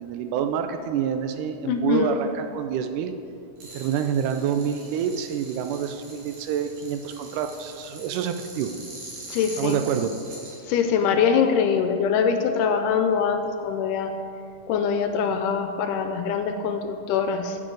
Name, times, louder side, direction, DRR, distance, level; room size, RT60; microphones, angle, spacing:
voice 1, 0.0-3.1 3.7-8.7 9.6-10.1, right 8 dB, 80° right, 7 dB, 2.0 m, -27 dB
voice 2, 1.7-2.2 9.3-9.8 10.7-14.1 14.7-17.6, left 6 dB, 80° left, 7 dB, 2.1 m, -23 dB
sound 1, 3.6-10.6, right 2 dB, 60° right, 3.1 m, -43 dB
13.5 x 8.3 x 3.9 m, 2.6 s
omnidirectional pair, 3.8 m